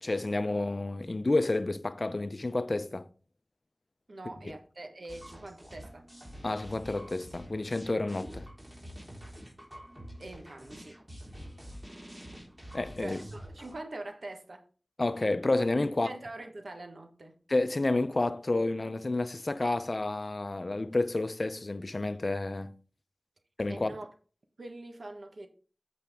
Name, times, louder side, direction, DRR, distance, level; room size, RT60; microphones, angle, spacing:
voice 1, 0.0-3.1 6.4-8.4 12.7-13.2 15.0-16.1 17.5-22.7 23.6-23.9, left 2 dB, 50° left, 0.6 m, -30 dB
voice 2, 4.1-6.1 10.2-11.0 13.0-14.6 16.0-17.4 23.7-24.1 24.6-25.5, right 2 dB, 70° right, 1.3 m, -44 dB
sound 1, 5.1-13.7, equal, 20° right, 3.6 m, -47 dB
8.2 x 5.8 x 3.5 m
cardioid pair, 40°, 0 cm